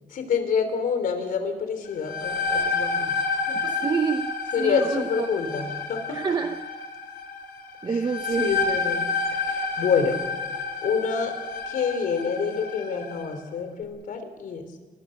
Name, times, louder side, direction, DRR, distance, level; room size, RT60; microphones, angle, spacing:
voice 1, 0.1-3.7 4.5-6.2 7.9-8.1 8.4-9.1 9.3-10.2 10.8-11.3 11.7-14.6, left 6 dB, 65° left, 3.7 m, -27 dB
sound 1, 1.8-13.3, left 4 dB, 80° left, 3.0 m, -30 dB
voice 2, 3.5-5.3 6.1-6.6 7.8-8.5, right 5 dB, 25° right, 0.8 m, -28 dB
29.5 x 19.5 x 6.7 m
cardioid pair, 155°, 16 cm